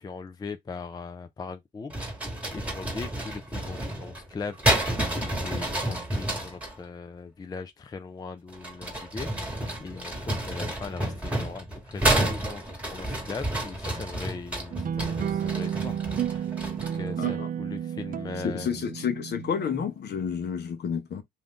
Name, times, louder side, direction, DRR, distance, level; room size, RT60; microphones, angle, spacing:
voice 1, 0.0-1.9 2.5-16.0 16.3-18.8, left 4 dB, 20° left, 0.4 m, -40 dB
sound 1, 1.9-6.7 8.5-17.1, right 1 dB, 5° right, 1.3 m, -30 dB
sound 2, 14.7-19.8, right 9 dB, 45° right, 0.4 m, -31 dB
voice 2, 17.2-17.5 18.4-21.2, left 7 dB, 55° left, 0.8 m, -30 dB
2.6 x 2.5 x 3.5 m
cardioid pair, 90°, 20 cm